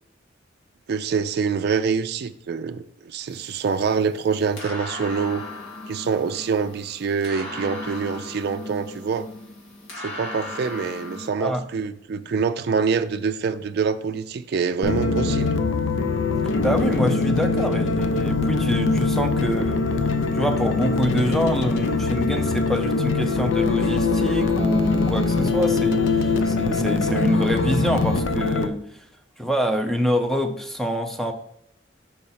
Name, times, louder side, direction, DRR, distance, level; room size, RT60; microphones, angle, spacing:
voice 1, 0.9-5.4 5.9-9.3 10.0-15.5, right 5 dB, 55° right, 0.4 m, -25 dB
sound 1, 3.3-11.3, left 2 dB, 70° left, 2.0 m, -37 dB
sound 2, 14.8-28.7, left 3 dB, 85° left, 0.6 m, -22 dB
voice 2, 16.6-19.9 20.3-28.8 29.4-31.3, equal, ahead, 0.6 m, -25 dB
5.6 x 4.1 x 5.6 m
head